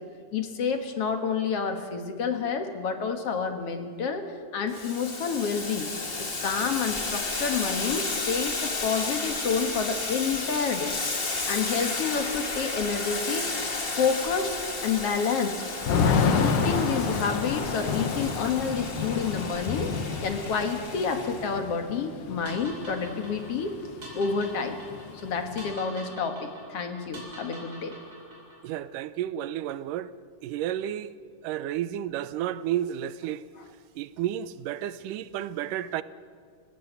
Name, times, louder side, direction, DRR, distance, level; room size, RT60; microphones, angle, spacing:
voice 1, 0.3-5.9 6.2-10.9 11.5-13.5 13.9-14.6 14.8-15.6 16.0-19.9 20.2-23.8 24.1-24.8 25.2-27.9, left 5 dB, 55° left, 2.3 m, -29 dB
Boiling, 4.7-21.5, left 3 dB, 30° left, 1.1 m, -33 dB
Thunder / Rain, 15.8-23.7 24.0-24.1 24.4-25.7, left 5 dB, 90° left, 3.2 m, -29 dB
sound 1, 22.5-28.7, right 1 dB, 30° right, 6.2 m, -45 dB
voice 2, 28.6-30.1 30.4-31.2 31.4-33.4 34.0-36.0, right 11 dB, 90° right, 2.4 m, -31 dB
30.0 x 15.5 x 8.1 m
omnidirectional pair, 3.6 m